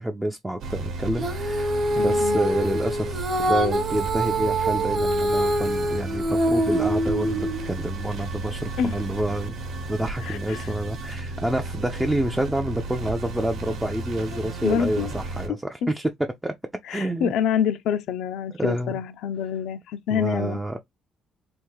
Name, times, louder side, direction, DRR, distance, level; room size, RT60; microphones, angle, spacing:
voice 1, 0.0-9.6 9.9-16.1 16.4-16.5 16.9-17.3 18.6-18.9 20.1-20.8, right 1 dB, 5° right, 0.4 m, -28 dB
sound 1, 0.6-15.5, right 2 dB, 70° right, 1.0 m, -33 dB
Female singing, 1.2-7.7, right 1 dB, 30° right, 0.8 m, -24 dB
voice 2, 2.0-2.4 8.8-8.9 10.2-10.7 14.3-15.1 15.8-15.9 16.9-20.6, left 8 dB, 80° left, 0.5 m, -27 dB
3.4 x 2.5 x 3.0 m
cardioid pair, 160°, 0 cm